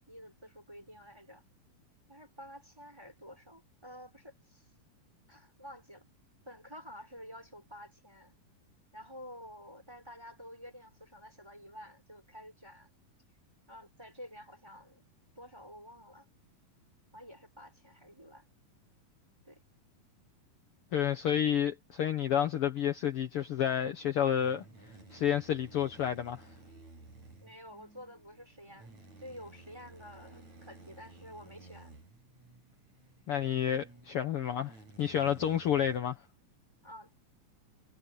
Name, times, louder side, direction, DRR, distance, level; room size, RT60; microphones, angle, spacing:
voice 1, 0.0-1.4 2.1-4.7 5.3-6.0 6.5-8.3 8.9-12.9 13.7-15.0 15.4-16.3 17.1-18.5 19.4-19.6 27.4-28.9 29.2-31.9 36.8-37.1, equal, 5° right, 5.8 m, -50 dB
voice 2, 20.9-24.6 25.1-26.5 33.3-36.2, left 9 dB, 65° left, 1.4 m, -30 dB
sound 1, 24.4-36.0, right 3 dB, 50° right, 9.5 m, -55 dB
omnidirectional pair, 4.1 m